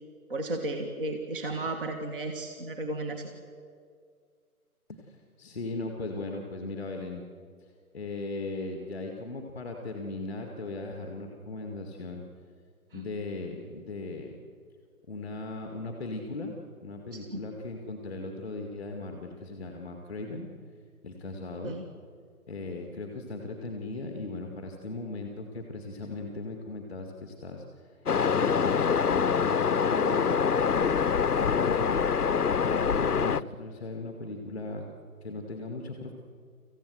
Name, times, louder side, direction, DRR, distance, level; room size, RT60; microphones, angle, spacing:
voice 1, 0.3-3.3 12.9-13.1 17.1-17.4 21.6-21.8, right 2 dB, 35° right, 4 dB, 1.7 m, -34 dB
voice 2, 4.9-7.3 7.9-12.2 12.9-14.4 15.1-16.5 16.8-20.5 21.0-21.8 22.5-27.9 28.2-30.9 31.3-32.1 32.6-34.9 35.2-36.1, left 2 dB, 5° left, 2 dB, 1.0 m, -38 dB
Waves surf, 28.1-33.4, left 6 dB, 85° left, 0.7 m, -25 dB
25.5 x 15.5 x 7.9 m, 2.1 s
figure-of-eight pair, 150°, 45 cm